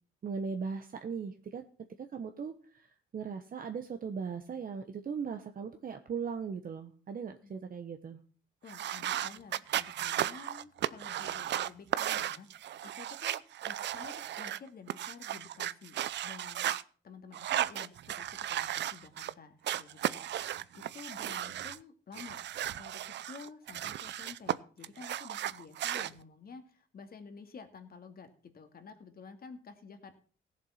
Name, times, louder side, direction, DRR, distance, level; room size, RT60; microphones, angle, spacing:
voice 1, 0.2-1.6 2.1-2.9 3.1-8.2, right 6 dB, 45° right, 6 dB, 1.3 m, -38 dB
voice 2, 8.6-12.5 12.8-16.7 17.0-20.3 20.7-22.4 22.7-30.2, left 5 dB, 50° left, 7 dB, 2.4 m, -51 dB
sound 1, 8.7-16.8 17.3-19.3 19.6-21.8 22.1-24.6 24.8-26.1, right 12 dB, 65° right, 0.6 m, -35 dB
16.5 x 7.5 x 5.8 m, 0.41 s
cardioid pair, 90°, 20 cm